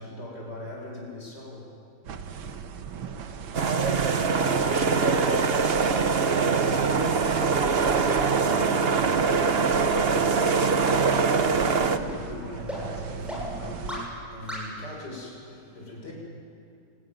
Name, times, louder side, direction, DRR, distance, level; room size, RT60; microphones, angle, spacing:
voice 1, 0.0-1.7 2.2-2.3 11.5-16.1, left 1 dB, 55° left, -1 dB, 6.7 m, -40 dB
sound 1, 2.0-14.1, right 6 dB, 85° right, 2.0 m, -38 dB
sound 2, 3.5-12.0, right 5 dB, 40° right, 1.0 m, -23 dB
voice 2, 3.6-6.4 6.8-8.7 9.0-10.1, right 3 dB, 55° right, 2 dB, 3.0 m, -36 dB
sound 3, 8.5-8.6 9.1-9.2 9.7-9.8 10.3-10.4 10.9-11.0 11.5-11.6 12.1-12.2 12.7-12.8 13.3-13.4 13.9-14.0 14.5-14.6, equal, ahead, 7.6 m, -37 dB
28.0 x 20.0 x 9.4 m, 2.4 s
omnidirectional pair, 2.1 m